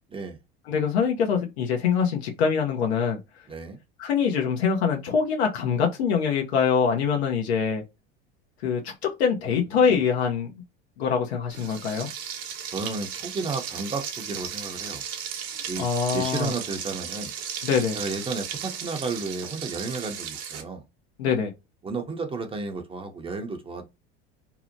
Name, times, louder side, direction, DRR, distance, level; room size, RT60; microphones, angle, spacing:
voice 1, 0.7-3.2 4.0-7.8 8.6-10.5 11.0-12.1 15.8-16.5 17.6-18.0 21.2-21.5, left 6 dB, 90° left, 0.6 m, -24 dB
voice 2, 3.5-3.8 9.4-9.9 12.7-15.0 15.7-15.9 16.1-17.3 17.9-20.8 21.8-23.8, right 3 dB, 20° right, 0.5 m, -33 dB
Frying (food), 11.5-20.6, right 8 dB, 65° right, 0.8 m, -35 dB
2.7 x 2.0 x 2.5 m
hypercardioid pair, 95°, 31 cm